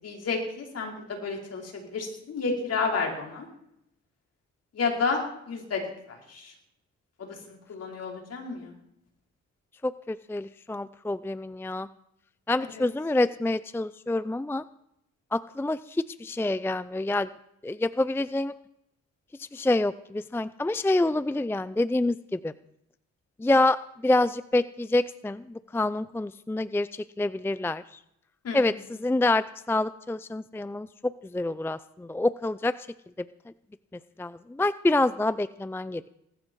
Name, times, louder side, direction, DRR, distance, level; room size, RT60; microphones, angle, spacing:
voice 1, 0.0-3.5 4.7-5.2 5.5-5.8 6.1-6.5 7.2-8.8 12.7-12.9 28.4-28.6, left 4 dB, 55° left, 0 dB, 5.1 m, -31 dB
voice 2, 9.8-11.9 12.5-14.6 15.3-17.3 17.6-18.5 19.4-22.5 23.4-28.0 28.5-32.9 34.2-36.0, left 2 dB, 10° left, 15 dB, 0.5 m, -27 dB
19.5 x 13.0 x 4.7 m, 0.78 s
cardioid pair, 90°, 30 cm